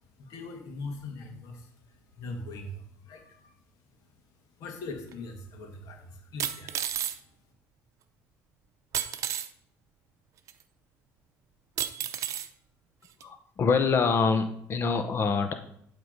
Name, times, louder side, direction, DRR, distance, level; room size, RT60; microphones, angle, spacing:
voice 1, 0.0-7.5, left 2 dB, 70° left, 3 dB, 1.9 m, -42 dB
sound 1, 5.1-5.2 6.4-7.2 8.9-9.5 10.5-10.6 11.8-12.5 13.2-13.3, right 10 dB, 55° right, 0.6 m, -31 dB
voice 2, 13.2-15.5, left 5 dB, 40° left, 8 dB, 0.7 m, -25 dB
11.0 x 3.7 x 5.2 m, 0.69 s
cardioid pair, 110°, 6 cm